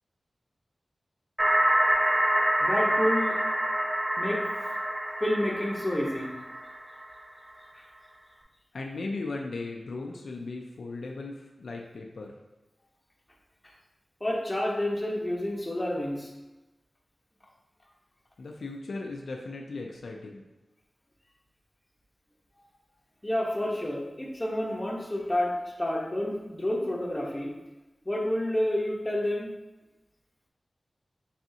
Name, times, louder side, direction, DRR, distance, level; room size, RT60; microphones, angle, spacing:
sound 1, 1.4-7.1, right 1 dB, 35° right, 0.7 m, -26 dB
voice 1, 2.6-3.4 4.2-4.4 5.2-6.3 14.2-16.3 23.2-27.5 28.0-29.5, left 1 dB, 20° left, -2 dB, 1.0 m, -29 dB
voice 2, 8.7-12.3 18.4-20.4, left 3 dB, 85° left, 1 dB, 0.4 m, -37 dB
4.0 x 3.5 x 2.8 m, 1.1 s
cardioid pair, 50°, 0 cm